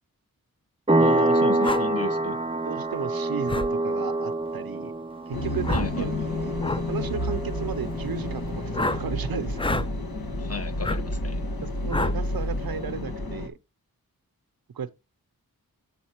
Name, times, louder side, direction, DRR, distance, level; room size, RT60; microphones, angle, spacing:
sound 1, 0.9-9.2, right 2 dB, 15° right, 0.7 m, -27 dB
voice 1, 1.0-2.4 5.7-6.1 10.4-11.5, left 4 dB, 40° left, 1.1 m, -33 dB
sound 2, 1.6-1.8 3.5-3.7 5.6-5.9 6.6-6.8 8.7-9.0 9.6-9.9 10.8-11.0 11.9-12.2, left 2 dB, 15° left, 0.5 m, -27 dB
voice 2, 2.6-4.9 5.3-6.5 6.9-9.9 11.6-13.6 14.7-14.9, right 7 dB, 70° right, 0.7 m, -34 dB
sound 3, 5.3-13.5, left 1 dB, 75° left, 1.5 m, -30 dB
7.2 x 4.0 x 4.4 m
cardioid pair, 40°, 36 cm